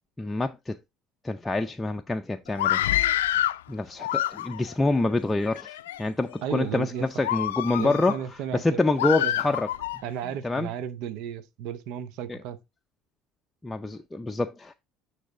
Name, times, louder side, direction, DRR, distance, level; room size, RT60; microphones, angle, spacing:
voice 1, 0.2-0.8 1.2-2.8 3.7-8.2 8.5-9.7 10.4-10.7 12.3-12.4 13.6-14.7, left 2 dB, 15° left, 0.5 m, -26 dB
Screaming, 2.5-3.6 4.0-4.7 5.4-6.0 6.5-6.7 7.2-8.2 9.0-10.0, left 13 dB, 85° left, 0.4 m, -27 dB
voice 2, 6.4-7.1 7.8-8.8 9.2-9.4 10.0-12.6, right 9 dB, 70° right, 0.7 m, -34 dB
9.3 x 3.4 x 3.8 m
hypercardioid pair, 70°, 0 cm